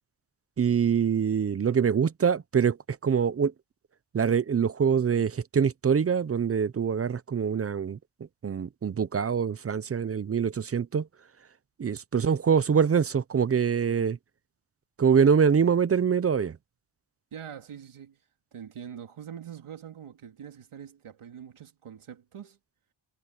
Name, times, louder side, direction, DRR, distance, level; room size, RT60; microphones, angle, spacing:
voice 1, 0.6-2.8 3.0-3.5 4.1-8.0 8.4-11.1 11.8-14.2 15.0-16.6, right 7 dB, 30° right, 0.4 m, -24 dB
voice 2, 17.3-18.2 18.5-22.6, right 9 dB, 75° right, 2.7 m, -43 dB
wide cardioid pair, 180°, 50 cm